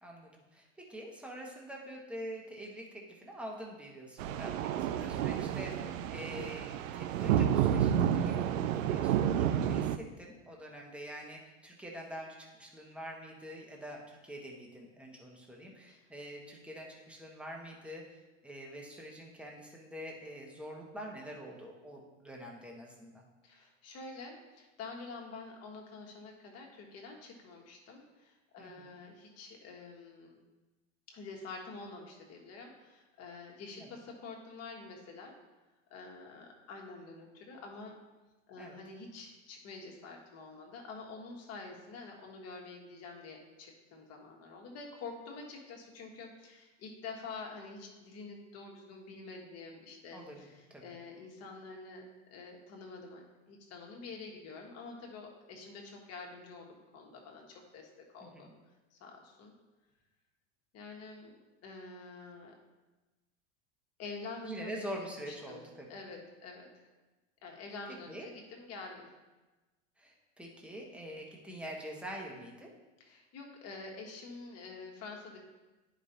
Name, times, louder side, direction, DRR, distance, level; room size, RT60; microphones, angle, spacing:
voice 1, 0.0-23.1 28.6-28.9 33.7-33.9 38.6-38.8 50.1-50.4 50.7-50.9 58.2-58.5 64.4-65.9 68.1-68.3 70.0-72.7, equal, 5° right, -1 dB, 1.2 m, -45 dB
Street horns & rainy day & lightning (reverb+), 4.2-10.0, right 9 dB, 85° right, 0.5 m, -30 dB
voice 2, 23.4-30.4 31.1-35.4 35.9-38.0 38.5-58.5 58.9-59.5 60.7-61.3 61.6-62.6 64.0-66.9 67.4-69.1 73.0-75.4, left 4 dB, 40° left, 1 dB, 1.6 m, -47 dB
9.8 x 5.1 x 2.8 m, 1.2 s
hypercardioid pair, 110°, 38 cm